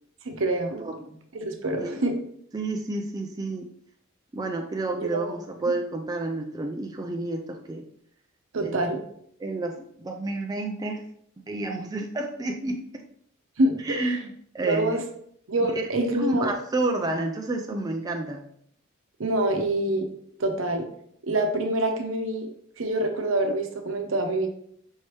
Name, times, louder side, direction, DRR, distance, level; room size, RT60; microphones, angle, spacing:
voice 1, 0.2-0.9 1.4-2.2 5.0-5.4 8.5-9.0 13.6-13.8 14.6-15.0 15.5-16.5 19.2-20.1 20.4-20.8 21.2-22.5 22.8-24.5, right 1 dB, 70° right, 4 dB, 0.7 m, -26 dB
voice 2, 2.5-3.7 4.3-7.8 8.6-8.8 9.4-11.0 11.5-12.8 13.8-15.0 15.8-15.9 16.2-18.4, right 2 dB, 20° right, 2 dB, 0.3 m, -30 dB
5.4 x 3.0 x 3.2 m, 0.66 s
head